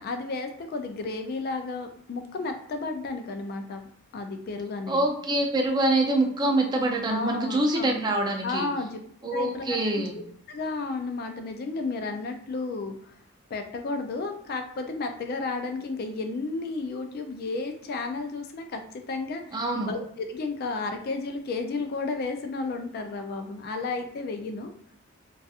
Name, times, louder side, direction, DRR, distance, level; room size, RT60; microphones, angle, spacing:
voice 1, 0.0-3.8 4.1-5.1 7.1-8.1 8.4-9.0 9.3-13.1 13.5-24.7, left 3 dB, 50° left, 6 dB, 0.3 m, -33 dB
voice 2, 4.9-8.7 9.2-10.1 19.5-19.9, right 1 dB, 20° right, 2 dB, 0.4 m, -25 dB
2.7 x 2.3 x 2.3 m, 0.64 s
head